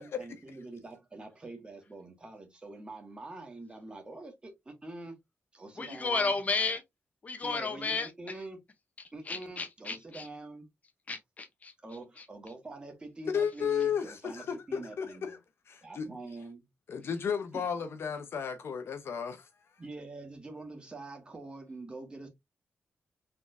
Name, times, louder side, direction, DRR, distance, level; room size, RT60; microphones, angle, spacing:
voice 1, 0.0-5.2 5.5-6.4 7.4-8.6 9.1-10.7 11.8-15.4 15.8-16.7 17.5-17.6 19.8-22.3, right 2 dB, 20° right, 1.5 m, -45 dB
voice 2, 5.8-6.8 7.2-8.1 9.3-10.3 11.1-11.7 12.2-12.3, left 4 dB, 35° left, 0.8 m, -33 dB
voice 3, 13.3-15.4 15.7-16.1 16.9-19.5, left 7 dB, 70° left, 0.7 m, -33 dB
4.2 x 3.6 x 2.6 m
wide cardioid pair, 145°, 4 cm